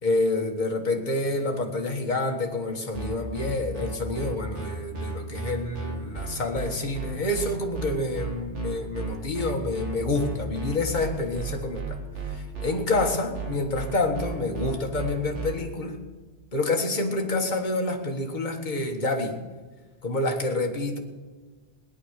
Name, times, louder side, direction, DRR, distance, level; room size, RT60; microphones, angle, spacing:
voice 1, 0.0-12.0 12.2-16.0 16.5-19.4 20.0-21.0, left 2 dB, 40° left, 2 dB, 1.8 m, -28 dB
sound 1, 2.9-15.5, right 4 dB, 80° right, 2.7 m, -34 dB
18.0 x 10.5 x 6.6 m, 1.3 s
omnidirectional pair, 1.2 m